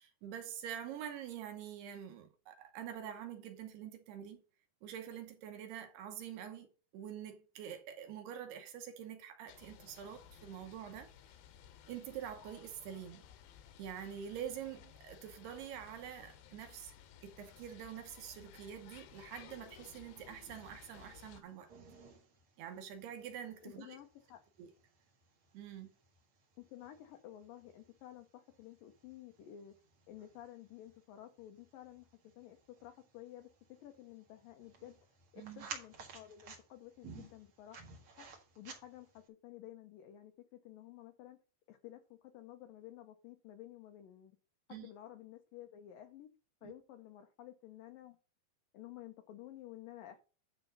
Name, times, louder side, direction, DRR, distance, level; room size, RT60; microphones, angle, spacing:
voice 1, 0.0-4.4 4.8-11.1 11.9-13.2 13.8-16.9 17.2-21.7 22.6-24.0 24.6-24.7 25.5-25.9 35.4-35.7 44.7-44.9 46.6-46.7, right 9 dB, 75° right, 2.7 m, -46 dB
sound 1, 9.5-21.4, left 9 dB, 75° left, 2.3 m, -58 dB
sound 2, 19.8-39.3, right 5 dB, 60° right, 1.5 m, -56 dB
voice 2, 23.6-24.4 26.6-29.8 30.1-32.1 32.4-33.5 33.8-37.8 38.1-38.3 38.6-41.4 41.7-44.4 44.7-46.3 46.6-48.2 48.7-50.2, left 12 dB, 90° left, 1.9 m, -53 dB
10.5 x 4.1 x 5.3 m
omnidirectional pair, 5.3 m